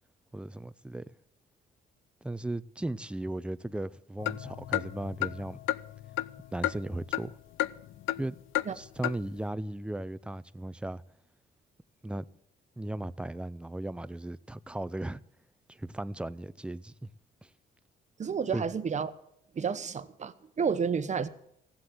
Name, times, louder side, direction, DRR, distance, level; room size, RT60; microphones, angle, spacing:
voice 1, 0.3-1.1 2.2-5.6 6.5-7.4 8.2-8.4 8.7-11.0 12.0-12.3 12.8-15.2 15.7-17.1 17.4-17.5 18.5-18.7, right 1 dB, 5° right, 0.5 m, -36 dB
sound 1, 4.2-7.3 7.6-8.2 8.5-8.7 9.0-9.2, left 14 dB, 80° left, 0.4 m, -32 dB
voice 2, 18.2-19.1 19.6-21.3, right 6 dB, 35° right, 0.9 m, -30 dB
16.0 x 7.8 x 7.8 m
cardioid pair, 90°, 20 cm